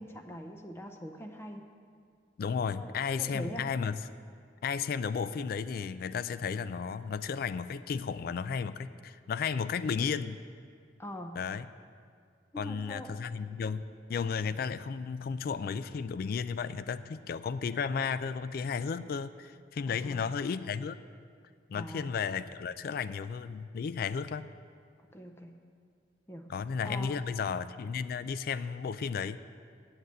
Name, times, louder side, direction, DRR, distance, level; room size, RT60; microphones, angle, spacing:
voice 1, 0.0-1.6 2.8-3.6 11.0-11.4 12.5-13.1 19.9-20.3 21.7-22.1 25.1-25.6 26.3-26.5 26.8-27.2, equal, 15° left, 4 dB, 0.6 m, -43 dB
voice 2, 2.4-4.0 4.6-10.4 11.4-11.7 12.6-13.8 14.1-21.0 21.7-24.5 26.5-29.4, left 6 dB, 50° left, 14 dB, 0.3 m, -33 dB
7.9 x 7.8 x 8.4 m, 2.1 s
head